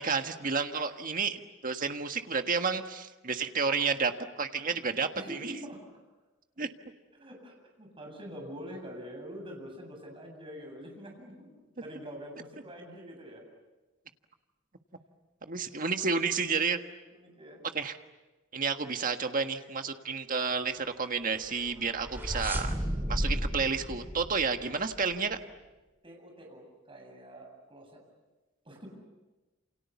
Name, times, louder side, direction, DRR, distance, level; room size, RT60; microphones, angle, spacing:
voice 1, 0.0-4.1 4.4-5.5 6.6-6.7 15.4-16.8 17.7-18.0 18.5-22.7 23.1-25.4, right 5 dB, 45° right, 6 dB, 1.6 m, -31 dB
voice 2, 5.1-5.8 7.1-13.4 17.1-17.6 25.1-25.4 26.0-28.0 28.6-28.9, equal, 30° right, 1 dB, 7.8 m, -45 dB
sound 1, 21.5-25.2, equal, 10° right, 3.1 m, -34 dB
28.5 x 28.5 x 7.2 m, 1.1 s
head